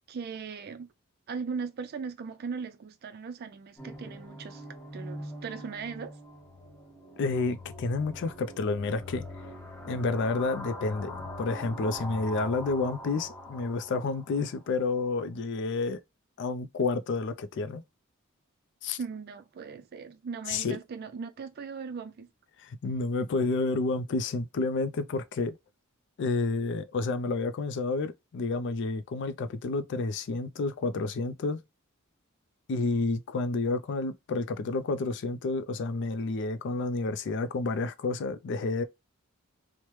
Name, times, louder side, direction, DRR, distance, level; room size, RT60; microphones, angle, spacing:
voice 1, 0.1-0.9 1.3-4.7 4.9-6.2 19.0-22.3, right 5 dB, 45° right, 0.4 m, -38 dB
sound 1, 3.8-14.6, left 1 dB, 10° left, 1.2 m, -43 dB
voice 2, 7.2-9.2 9.8-16.0 16.4-17.8 18.8-19.0 20.5-20.8 22.6-25.6 26.2-31.6 32.7-38.8, left 3 dB, 55° left, 0.4 m, -30 dB
3.2 x 2.1 x 2.9 m
head